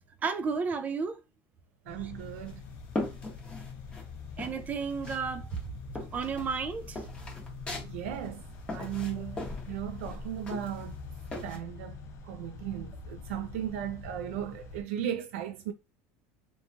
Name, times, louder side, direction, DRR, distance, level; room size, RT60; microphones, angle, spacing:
voice 1, 0.2-1.2 2.0-2.1 4.4-5.5 6.1-7.0 9.1-9.4, right 5 dB, 20° right, 0.3 m, -32 dB
sound 1, 1.9-14.8, left 5 dB, 40° left, 0.5 m, -44 dB
voice 2, 1.9-2.6 7.8-8.4 8.7-11.0 11.4-12.0 12.2-15.7, right 11 dB, 90° right, 0.4 m, -36 dB
sound 2, 2.2-4.1 4.4-5.2 5.5-11.6, left 2 dB, 15° left, 0.8 m, -39 dB
3.0 x 2.2 x 2.5 m
supercardioid pair, 145°, 7 cm